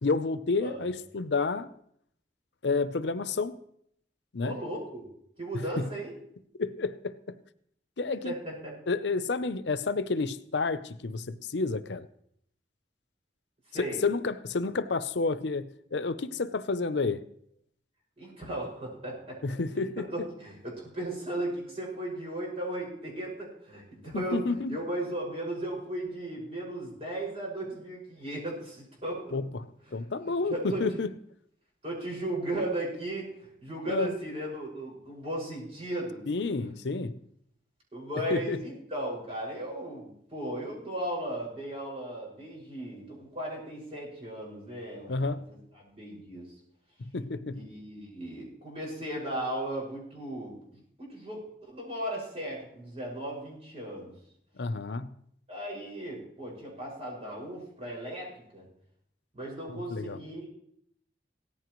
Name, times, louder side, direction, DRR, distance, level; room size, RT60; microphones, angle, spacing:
voice 1, 0.0-1.7 2.6-3.6 4.3-4.6 5.5-5.9 6.6-7.4 8.0-8.3 8.9-12.1 13.7-17.3 19.4-20.1 24.1-24.8 29.3-31.1 33.9-34.2 36.3-37.2 38.3-38.6 45.1-45.5 47.0-47.7 54.6-55.1 59.7-60.2, left 3 dB, 85° left, 0.7 m, -30 dB
voice 2, 4.4-5.1 5.4-6.1 8.1-8.7 13.7-14.0 18.2-19.4 19.8-24.4 24.7-29.4 30.2-30.8 31.8-36.2 37.9-45.4 45.8-46.5 47.5-54.1 55.5-58.7 59.3-60.5, right 1 dB, 35° right, 5.8 m, -36 dB
17.5 x 14.5 x 3.1 m
head